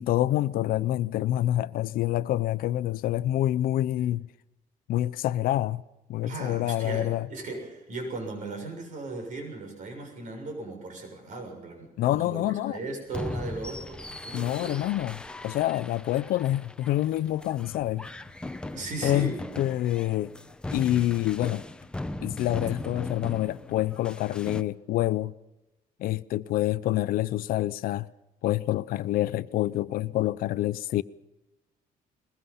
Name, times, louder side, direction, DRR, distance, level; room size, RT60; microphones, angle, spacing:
voice 1, 0.0-4.3 4.9-5.8 6.1-7.3 12.0-12.8 14.3-18.1 19.0-20.3 20.7-21.6 22.2-25.3 26.0-28.1 28.4-31.0, left 14 dB, 75° left, 0.7 m, -27 dB
voice 2, 6.2-14.8 18.7-19.4, right 3 dB, 55° right, 7.0 m, -37 dB
sound 1, 13.1-24.6, left 2 dB, 5° left, 0.8 m, -39 dB
22.0 x 21.5 x 5.6 m
cardioid pair, 155°, 15 cm